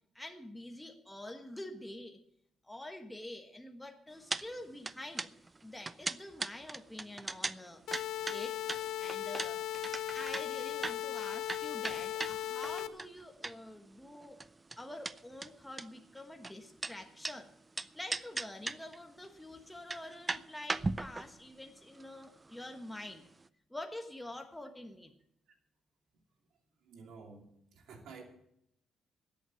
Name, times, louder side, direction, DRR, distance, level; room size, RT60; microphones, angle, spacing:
voice 1, 0.1-2.2 2.6-5.3 5.6-7.8 8.3-8.6 9.0-9.6 10.1-14.4 14.8-17.5 17.9-23.3 23.7-25.1, left 1 dB, 5° left, 4 dB, 1.3 m, -46 dB
sound 1, 4.3-4.5 4.7-13.8 14.1-17.4 17.8-19.0 19.2-19.3 19.7-23.1 23.4-23.5, right 3 dB, 25° right, 0.5 m, -39 dB
sound 2, 7.9-12.9, left 12 dB, 80° left, 0.6 m, -37 dB
voice 2, 26.5-28.2, right 4 dB, 75° right, 2 dB, 2.8 m, -53 dB
13.5 x 8.6 x 7.7 m, 0.76 s
cardioid pair, 90°, 0 cm